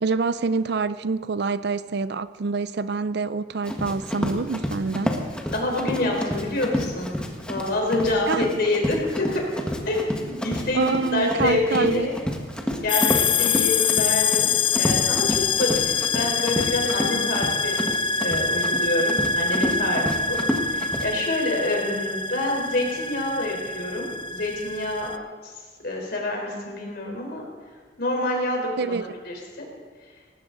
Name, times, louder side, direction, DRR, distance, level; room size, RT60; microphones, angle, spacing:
voice 1, 0.0-5.1 8.3-8.4 10.7-12.1 28.8-29.1, right 4 dB, 65° right, 15 dB, 0.5 m, -26 dB
Run, 3.6-21.1, equal, 5° left, 1.5 m, -29 dB
voice 2, 5.5-7.1 7.5-9.4 9.9-12.1 12.8-17.8 18.2-20.4 20.7-25.1 25.4-25.5 25.8-27.4 28.0-29.0 29.2-29.7, left 2 dB, 60° left, 0 dB, 4.1 m, -27 dB
sound 1, 12.9-25.2, left 5 dB, 30° left, 0.5 m, -25 dB
19.0 x 16.0 x 4.0 m, 1.5 s
head